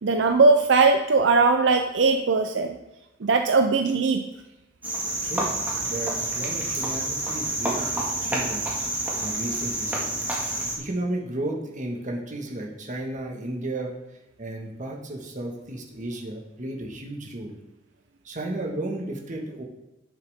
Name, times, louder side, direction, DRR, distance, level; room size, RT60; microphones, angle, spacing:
voice 1, 0.0-2.8 3.2-4.2, right 4 dB, 70° right, 5 dB, 0.5 m, -20 dB
Cricket, 4.8-10.8, right 1 dB, 10° right, 1.7 m, -28 dB
voice 2, 5.2-5.5 5.8-10.1 10.8-13.9 14.4-17.5 18.2-19.6, right 1 dB, 40° right, 1 dB, 1.5 m, -33 dB
10.5 x 6.7 x 3.5 m, 1.0 s
head